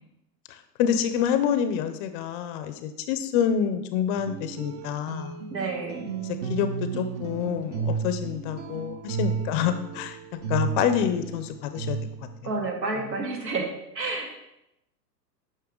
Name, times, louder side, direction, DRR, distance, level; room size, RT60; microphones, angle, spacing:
voice 1, 0.8-5.3 6.2-10.2 10.5-12.0, left 8 dB, 35° left, 9 dB, 0.5 m, -27 dB
sound 1, 4.2-12.4, right 6 dB, 45° right, 0.8 m, -33 dB
voice 2, 5.5-6.1 12.4-13.7 13.9-14.4, right 3 dB, 85° right, 1 dB, 2.2 m, -30 dB
9.2 x 5.7 x 3.7 m, 0.86 s
hypercardioid pair, 120°, 49 cm